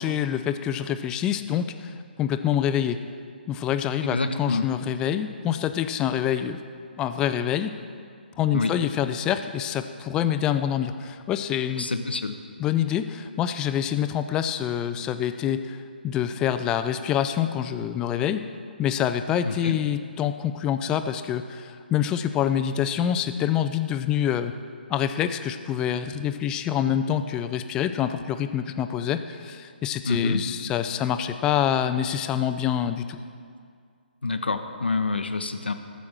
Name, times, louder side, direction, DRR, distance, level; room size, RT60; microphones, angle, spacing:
voice 1, 0.0-3.0 3.5-6.6 7.0-7.7 8.4-11.9 12.6-15.8 16.0-18.4 18.8-24.5 24.9-33.2, left 9 dB, 15° left, 10 dB, 0.4 m, -26 dB
voice 2, 4.1-4.7 8.5-8.7 11.8-12.4 19.4-19.8 30.1-30.4 34.2-35.7, left 3 dB, 75° left, 8 dB, 0.8 m, -26 dB
13.0 x 7.0 x 6.3 m, 2.2 s
figure-of-eight pair, 135°, 6 cm